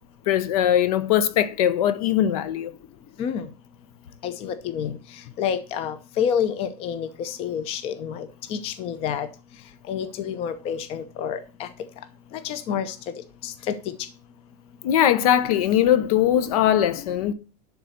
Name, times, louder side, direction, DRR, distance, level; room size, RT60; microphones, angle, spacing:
voice 1, 0.3-2.7 14.8-17.3, left 10 dB, 65° left, 1.0 m, -20 dB
voice 2, 4.2-4.9 5.4-9.3 9.9-11.7 12.4-12.9 13.4-13.7, left 8 dB, 30° left, 0.7 m, -28 dB
11.5 x 4.0 x 6.4 m
supercardioid pair, 160°, 20 cm